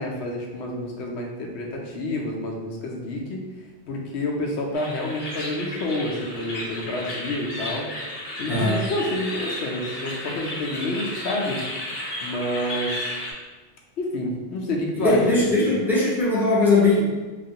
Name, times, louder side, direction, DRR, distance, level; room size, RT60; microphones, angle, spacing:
voice 1, 0.0-3.4 3.9-7.9 8.4-11.6 12.2-13.1 14.0-15.7, left 1 dB, 85° left, 0 dB, 0.9 m, -28 dB
sound 1, 4.7-13.3, left 1 dB, 45° left, 0.6 m, -33 dB
voice 2, 8.5-8.8 15.0-17.0, left 2 dB, ahead, -8 dB, 0.6 m, -20 dB
3.0 x 2.4 x 2.7 m, 1.3 s
omnidirectional pair, 1.1 m